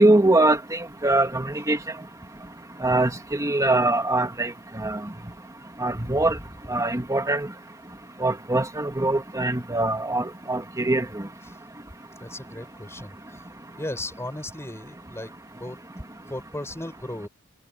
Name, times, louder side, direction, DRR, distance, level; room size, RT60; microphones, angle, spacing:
voice 1, 0.0-1.8 2.8-5.0 5.8-6.4 6.7-7.5 8.2-11.1, right 2 dB, 15° right, 2.1 m, -22 dB
voice 2, 12.1-15.8 16.3-17.3, left 1 dB, 15° left, 6.1 m, -37 dB
head